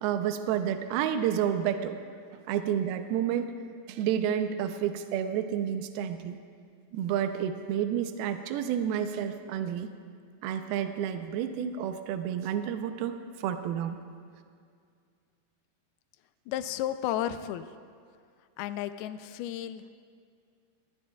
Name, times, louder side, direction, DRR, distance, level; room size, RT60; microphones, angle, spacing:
voice 1, 0.0-2.0 2.3-3.5 3.9-6.4 6.9-9.9 10.4-14.0, right 9 dB, 80° right, 7 dB, 2.6 m, -30 dB
voice 2, 16.5-17.7 18.6-19.9, left 11 dB, 85° left, 11 dB, 2.5 m, -33 dB
21.0 x 19.5 x 2.3 m, 2.2 s
omnidirectional pair, 4.4 m